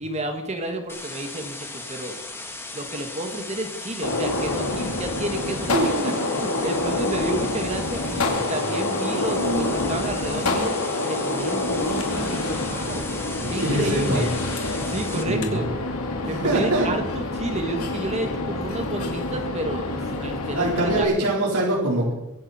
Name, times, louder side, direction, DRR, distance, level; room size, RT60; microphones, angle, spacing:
voice 1, 0.0-2.2 2.7-13.0 13.5-14.3 14.6-15.7 16.2-21.3, right 1 dB, 30° right, 5 dB, 1.8 m, -31 dB
sound 1, 0.9-15.2, left 2 dB, 10° left, 1.8 m, -37 dB
Gunshot gunfire, 4.0-21.0, left 2 dB, 70° left, 2.5 m, -27 dB
voice 2, 5.7-6.1 9.4-9.7 13.4-14.2 15.3-15.6 16.2-16.9 20.5-22.1, right 1 dB, 80° right, -4 dB, 4.2 m, -23 dB
24.0 x 10.0 x 4.4 m, 0.90 s
head